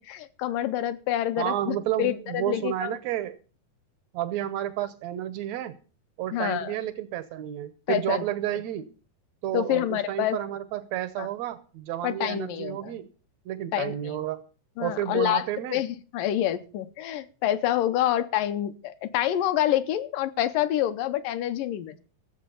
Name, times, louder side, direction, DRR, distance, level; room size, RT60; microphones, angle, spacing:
voice 1, 0.1-2.9 6.3-6.8 7.9-8.2 9.5-10.4 11.2-11.3 12.0-12.9 13.7-14.1 14.8-15.4 15.7-22.0, left 12 dB, 80° left, 10 dB, 2.3 m, -27 dB
voice 2, 1.4-3.4 4.1-5.8 6.2-8.9 9.4-13.1 13.4-14.4 14.8-15.8, right 12 dB, 85° right, 14 dB, 1.5 m, -31 dB
15.0 x 7.6 x 6.8 m, 0.38 s
omnidirectional pair, 4.0 m